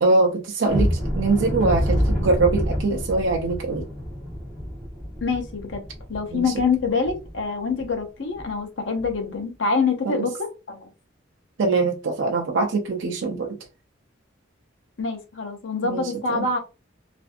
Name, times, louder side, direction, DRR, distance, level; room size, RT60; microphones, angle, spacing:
voice 1, 0.0-3.9 6.3-6.5 10.1-10.3 11.6-13.6 15.8-16.5, right 3 dB, 65° right, 0.4 m, -23 dB
sound 1, 0.7-7.4 7.8-7.9 8.3-8.5 9.0-9.2, equal, ahead, 1.2 m, -27 dB
voice 2, 5.2-5.8 6.1-10.9 15.0-16.6, left 4 dB, 65° left, 0.7 m, -25 dB
2.5 x 2.5 x 2.4 m
head